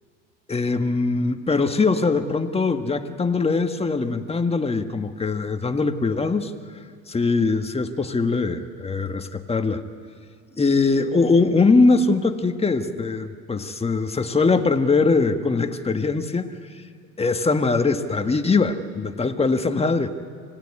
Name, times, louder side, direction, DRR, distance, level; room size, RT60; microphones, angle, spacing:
voice 1, 0.5-6.5 7.1-9.8 10.6-16.6 17.2-20.1, left 3 dB, 15° left, 7 dB, 1.5 m, -21 dB
26.0 x 16.5 x 9.8 m, 2.2 s
supercardioid pair, 90°, 36 cm